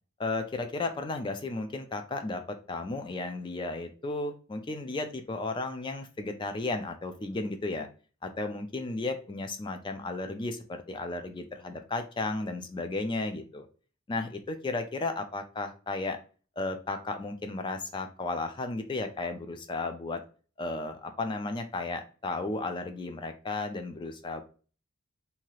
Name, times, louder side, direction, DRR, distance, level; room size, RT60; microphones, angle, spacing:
voice 1, 0.2-7.9 8.2-13.7 14.1-16.2 16.6-20.2 20.6-24.4, left 3 dB, 20° left, 7 dB, 0.3 m, -34 dB
2.8 x 2.3 x 3.0 m, 0.38 s
head